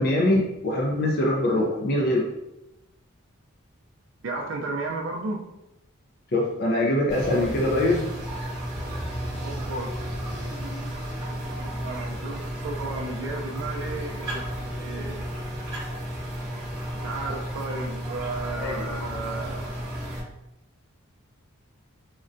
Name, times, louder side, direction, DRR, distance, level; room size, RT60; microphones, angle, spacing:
voice 1, 0.0-2.2 6.3-8.1 18.6-18.8, left 1 dB, 45° left, -1 dB, 0.4 m, -23 dB
voice 2, 4.2-5.5 9.4-9.9 11.6-15.3 16.9-19.8, right 2 dB, 65° right, 1 dB, 0.4 m, -34 dB
sound 1, 7.1-20.2, equal, 15° right, 0.9 m, -33 dB
3.7 x 2.1 x 2.5 m, 0.90 s
head